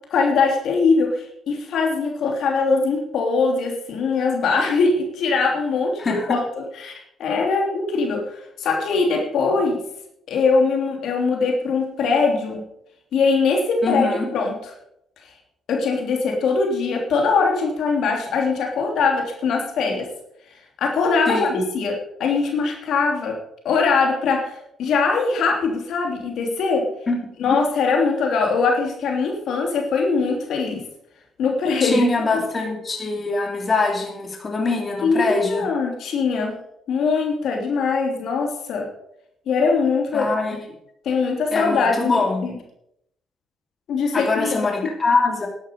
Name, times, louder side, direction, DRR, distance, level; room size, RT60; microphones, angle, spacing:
voice 1, 0.1-6.4 6.8-9.8 10.3-12.6 13.1-14.5 15.7-20.1 20.8-23.4 23.6-26.8 27.4-30.8 31.4-32.1 32.3-32.4 35.0-36.5 36.9-38.9 39.5-40.3 41.0-42.1 42.4-42.5 43.9-44.6, left 4 dB, 75° left, 2 dB, 3.1 m, -21 dB
voice 2, 6.0-6.4 13.8-14.2 21.3-21.6 27.1-27.2 27.5-27.6 31.8-35.7 40.1-40.6 41.5-42.5 44.1-45.5, left 3 dB, 30° left, 2 dB, 3.1 m, -23 dB
12.0 x 11.0 x 5.3 m, 0.76 s
cardioid pair, 90°, 0 cm